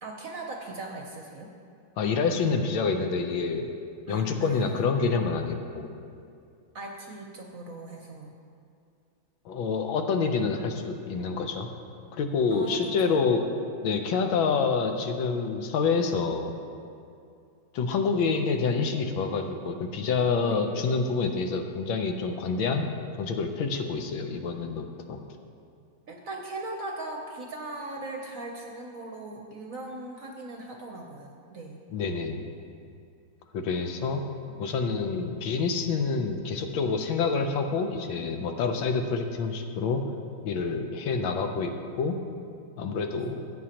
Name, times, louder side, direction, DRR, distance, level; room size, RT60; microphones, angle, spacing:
voice 1, 0.0-1.5 4.1-5.2 6.7-8.3 10.3-10.4 12.5-13.2 20.4-20.7 26.1-31.8 34.4-34.6 43.1-43.3, right 2 dB, 60° right, 1 dB, 0.9 m, -39 dB
voice 2, 2.0-3.7 4.1-5.9 9.4-11.7 12.1-13.4 13.8-16.5 17.7-22.9 23.2-25.2 31.9-32.4 33.5-34.2 34.6-40.0 40.4-42.2 42.8-43.4, left 4 dB, 90° left, 5 dB, 1.6 m, -27 dB
15.0 x 8.4 x 2.9 m, 2.4 s
omnidirectional pair, 2.1 m